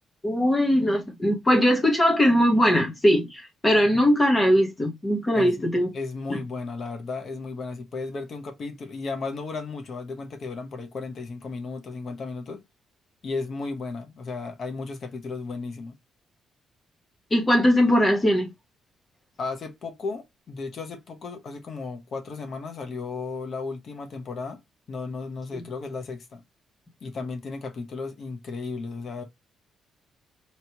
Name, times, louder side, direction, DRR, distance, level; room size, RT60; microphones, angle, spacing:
voice 1, 0.2-5.9 6.3-6.4 17.3-18.5 25.5-25.6, equal, 20° left, 1.1 m, -20 dB
voice 2, 5.3-5.7 5.9-12.6 13.2-16.0 19.4-24.6 24.9-26.4 27.0-29.2, left 4 dB, 55° left, 1.0 m, -34 dB
3.1 x 3.0 x 2.8 m
cardioid pair, 90°, 0 cm